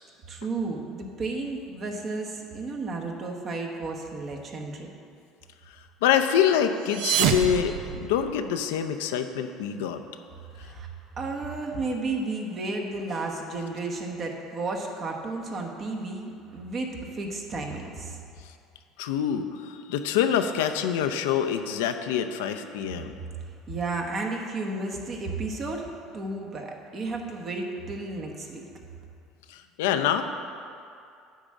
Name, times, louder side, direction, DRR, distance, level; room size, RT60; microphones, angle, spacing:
voice 1, 0.3-4.9 10.6-10.9 11.2-18.2 23.7-28.6, right 3 dB, 40° right, 1 dB, 1.2 m, -33 dB
voice 2, 6.0-10.0 19.0-23.1 29.5-30.2, left 9 dB, 90° left, 7 dB, 0.5 m, -25 dB
sound 1, 6.7-8.6, right 8 dB, 75° right, 0.6 m, -27 dB
10.0 x 3.7 x 7.3 m, 2.4 s
supercardioid pair, 105°, 0 cm